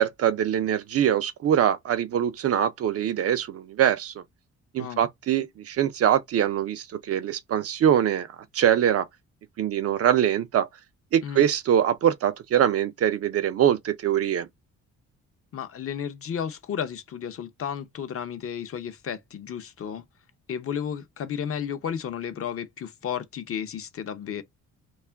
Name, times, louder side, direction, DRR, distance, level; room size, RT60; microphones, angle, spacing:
voice 1, 0.0-4.2 4.7-8.3 8.5-9.1 9.6-10.7 11.1-14.5, right 10 dB, 50° right, 0.5 m, -23 dB
voice 2, 15.5-20.0 20.5-24.4, left 8 dB, 50° left, 0.6 m, -33 dB
2.3 x 2.1 x 3.3 m
cardioid pair, 90°, 30 cm